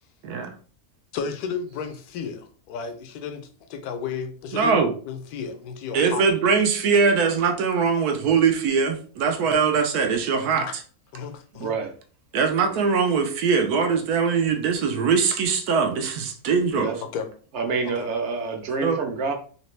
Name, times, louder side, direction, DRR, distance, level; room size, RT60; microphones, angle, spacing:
voice 1, 1.1-6.2 9.4-9.6 10.5-10.8 11.1-11.7 17.0-17.3 17.8-18.1, left 6 dB, 80° left, 8 dB, 1.1 m, -33 dB
voice 2, 4.5-4.9 5.9-10.7 12.3-16.9 18.8-19.0, right 5 dB, 90° right, 5 dB, 1.2 m, -21 dB
voice 3, 11.6-11.9 12.7-12.9 16.7-17.0 17.5-19.3, right 4 dB, 55° right, 4 dB, 0.9 m, -27 dB
3.2 x 2.9 x 3.2 m, 0.42 s
omnidirectional pair, 1.6 m